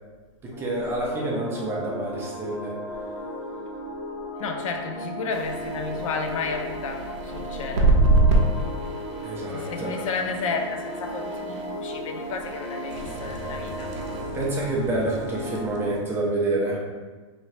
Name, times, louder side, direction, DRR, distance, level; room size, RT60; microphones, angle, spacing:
voice 1, 0.4-2.7 9.2-10.1 14.3-16.8, right 2 dB, 15° right, -3 dB, 0.4 m, -28 dB
sound 1, 0.5-15.9, equal, 30° left, 0.8 m, -35 dB
voice 2, 4.4-7.0 7.3-7.9 9.5-13.9, left 5 dB, 80° left, 4 dB, 0.5 m, -32 dB
sound 2, 5.3-16.0, right 2 dB, 60° right, 0.6 m, -27 dB
2.8 x 2.7 x 3.1 m, 1.3 s
supercardioid pair, 155°, 17 cm